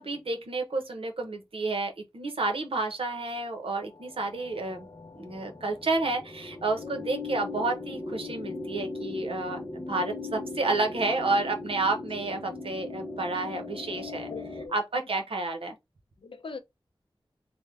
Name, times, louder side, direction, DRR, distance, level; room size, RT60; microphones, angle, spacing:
voice 1, 0.0-4.9 5.1-14.3 14.7-15.8, right 3 dB, 75° right, 0.9 m, -30 dB
sound 1, 3.2-14.7, left 3 dB, 30° left, 0.6 m, -39 dB
voice 2, 14.3-14.8 16.2-16.6, left 4 dB, 65° left, 0.6 m, -41 dB
3.4 x 2.1 x 3.3 m
wide cardioid pair, 65°, 10 cm